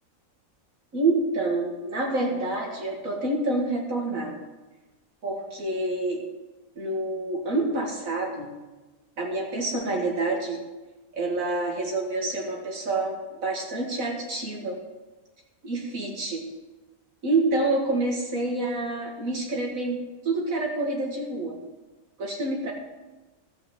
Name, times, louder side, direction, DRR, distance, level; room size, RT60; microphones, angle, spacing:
voice 1, 0.9-4.3 5.2-6.2 6.8-8.5 9.2-10.6 11.1-14.8 15.6-16.4 17.2-21.6 22.2-22.7, right 2 dB, 70° right, 0 dB, 2.4 m, -27 dB
14.5 x 5.2 x 7.3 m, 1.2 s
omnidirectional pair, 1.5 m